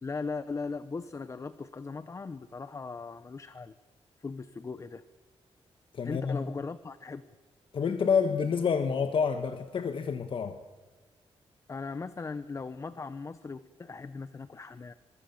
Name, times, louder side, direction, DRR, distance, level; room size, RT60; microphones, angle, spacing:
voice 1, 0.0-3.7 4.2-5.0 6.0-7.2 11.7-14.9, left 4 dB, 30° left, 0.8 m, -38 dB
voice 2, 5.9-6.4 7.7-10.6, left 6 dB, 55° left, 1.4 m, -28 dB
24.5 x 23.5 x 7.2 m
wide cardioid pair, 145°, 11 cm